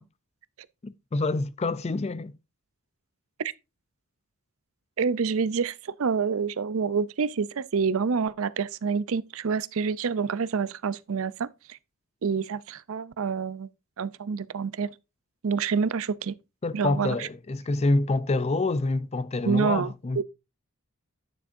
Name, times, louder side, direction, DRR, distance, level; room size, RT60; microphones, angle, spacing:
voice 1, 0.8-2.3 16.6-20.2, left 2 dB, 30° left, 0.4 m, -27 dB
voice 2, 5.0-11.8 12.2-13.7 14.0-14.9 15.4-16.4 16.7-17.3 19.4-20.2, right 5 dB, 65° right, 0.5 m, -27 dB
9.8 x 6.9 x 2.6 m
head